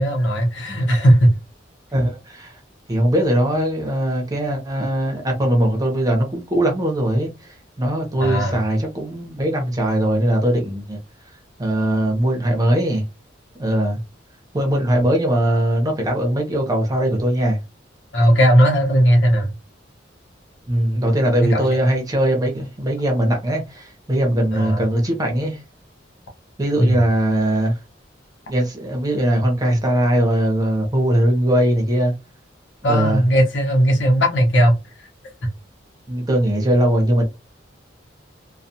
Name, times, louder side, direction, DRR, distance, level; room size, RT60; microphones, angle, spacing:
voice 1, 0.0-1.3 8.2-8.6 18.1-19.5 21.5-21.7 24.5-24.9 26.8-27.0 32.8-34.8, equal, 75° left, 0.9 m, -16 dB
voice 2, 1.9-2.6 2.9-7.3 7.8-11.0 11.6-13.0 13.6-14.0 14.5-17.6 20.7-25.6 26.6-27.7 28.5-32.1 32.9-33.2 36.1-37.2, right 1 dB, 20° right, 0.8 m, -20 dB
2.3 x 2.3 x 2.7 m
head